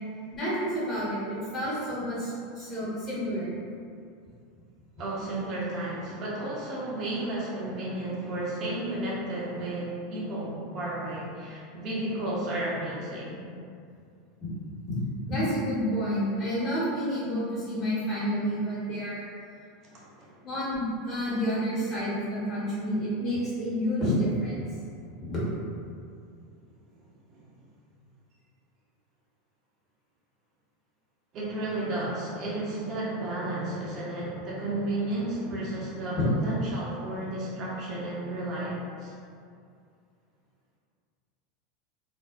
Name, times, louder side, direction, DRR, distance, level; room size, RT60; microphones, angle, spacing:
voice 1, 0.3-3.5 14.4-14.5 14.8-15.0 15.2-19.2 20.4-24.6 25.3-25.5 36.2-36.3, equal, 35° left, -9 dB, 1.2 m, -29 dB
voice 2, 5.0-13.4 19.9-20.3 27.3-27.5 31.3-39.1, right 1 dB, 45° right, -6 dB, 0.8 m, -33 dB
2.5 x 2.1 x 2.4 m, 2.3 s
hypercardioid pair, 100°, 0 cm